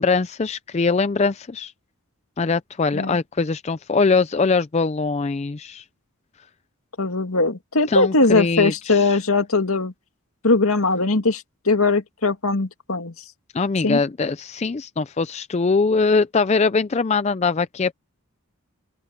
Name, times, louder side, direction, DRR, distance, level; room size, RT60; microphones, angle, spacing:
voice 1, 0.0-1.7 2.4-5.8 7.9-9.2 13.5-17.9, left 4 dB, 30° left, 0.4 m, -22 dB
voice 2, 7.0-9.9 10.4-13.1 13.8-14.0, left 3 dB, 75° left, 2.3 m, -20 dB
open air
head